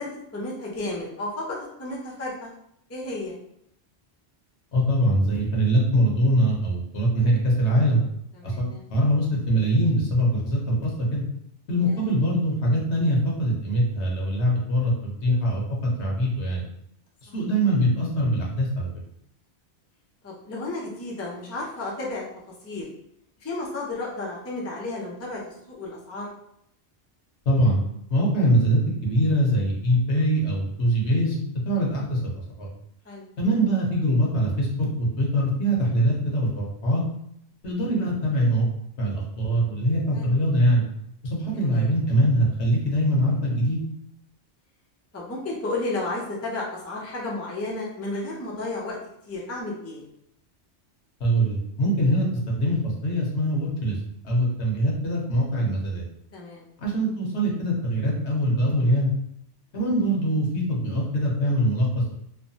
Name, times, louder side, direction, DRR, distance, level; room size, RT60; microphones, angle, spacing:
voice 1, 0.0-2.5 2.9-3.3 8.4-8.8 11.8-12.0 20.2-22.2 22.6-22.9 23.4-25.4 25.7-26.3 33.1-33.3 40.1-40.3 41.5-41.9 45.1-49.0 49.3-50.0 56.3-56.6, left 2 dB, 20° left, -4 dB, 0.4 m, -32 dB
voice 2, 4.7-8.0 8.4-11.2 11.7-15.6 16.0-16.6 17.3-18.9 27.5-27.8 28.1-31.4 31.7-32.7 33.4-37.0 37.6-38.6 39.0-40.8 41.2-43.8 51.2-54.0 54.2-56.0 56.8-59.1 59.7-62.1, equal, 70° left, -3 dB, 1.1 m, -23 dB
3.1 x 2.1 x 2.7 m, 0.74 s
omnidirectional pair, 1.2 m